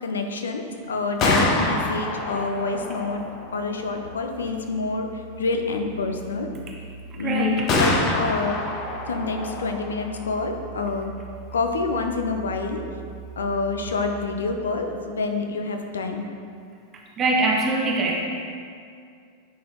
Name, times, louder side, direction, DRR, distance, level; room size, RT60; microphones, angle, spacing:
voice 1, 0.0-3.2 3.5-5.1 5.4-6.5 7.1-8.6 9.1-11.1 11.5-12.8 13.4-16.2, left 3 dB, 70° left, 5 dB, 0.6 m, -27 dB
Gunshot gunfire, 1.0-14.8, left 2 dB, 35° left, 0.9 m, -30 dB
voice 2, 7.2-7.7 17.2-18.2, right 3 dB, 25° right, -1 dB, 0.8 m, -23 dB
9.4 x 4.3 x 3.7 m, 2.3 s
figure-of-eight pair, 90°, 0 cm